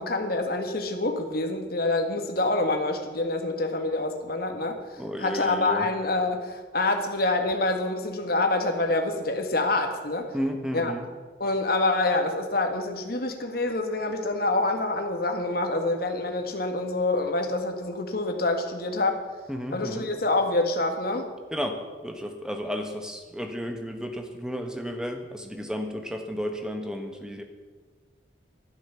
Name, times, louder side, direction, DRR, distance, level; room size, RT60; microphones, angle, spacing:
voice 1, 0.0-10.3 10.7-10.9 11.4-19.2 19.7-21.3, left 2 dB, 50° left, 5 dB, 1.7 m, -26 dB
voice 2, 5.0-5.9 10.3-11.1 19.5-20.1 21.5-21.8 22.0-27.4, equal, 5° right, 5 dB, 1.3 m, -32 dB
12.0 x 11.5 x 7.0 m, 1.4 s
head